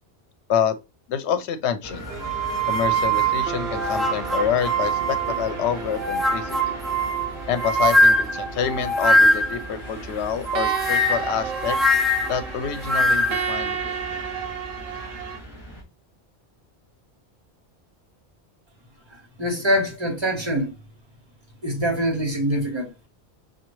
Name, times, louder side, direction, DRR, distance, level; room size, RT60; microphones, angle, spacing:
voice 1, 1.1-2.1 2.7-6.8 7.5-11.8 12.3-14.0, left 8 dB, 80° left, 0.9 m, -27 dB
sound 1, 1.8-15.8, equal, 25° left, 1.9 m, -39 dB
sound 2, 2.1-15.4, right 6 dB, 70° right, 0.8 m, -34 dB
sound 3, 2.2-5.5 5.9-9.7 10.5-13.5, equal, ahead, 0.4 m, -22 dB
voice 2, 19.1-20.7 21.6-23.1, equal, 25° right, 1.0 m, -24 dB
5.6 x 2.4 x 3.0 m
omnidirectional pair, 1.1 m